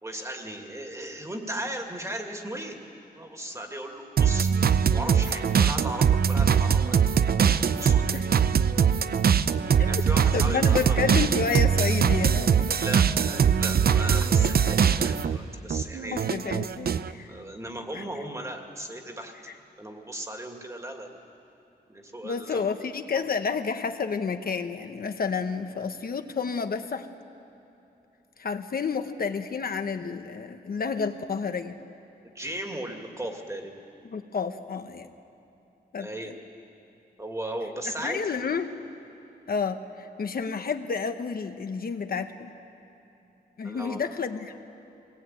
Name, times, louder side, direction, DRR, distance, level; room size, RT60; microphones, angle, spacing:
voice 1, 0.0-2.8 3.1-4.5 4.9-7.0 7.8-8.2 9.8-11.1 12.7-16.3 17.3-19.3 19.8-21.2 21.9-22.7 31.0-31.1 32.3-33.7 36.0-36.3 37.2-38.4 43.6-44.1, right 1 dB, 15° right, 3 dB, 2.4 m, -36 dB
sound 1, 4.2-15.4 15.7-17.1, right 7 dB, 60° right, 0.7 m, -22 dB
voice 2, 10.3-12.5 16.1-17.4 17.9-18.0 22.2-27.1 28.4-31.8 34.1-35.1 35.9-36.3 38.0-38.7 39.5-42.5 43.6-44.5, left 5 dB, 60° left, 7 dB, 1.0 m, -30 dB
23.5 x 19.0 x 9.0 m, 3.0 s
wide cardioid pair, 120°, 17 cm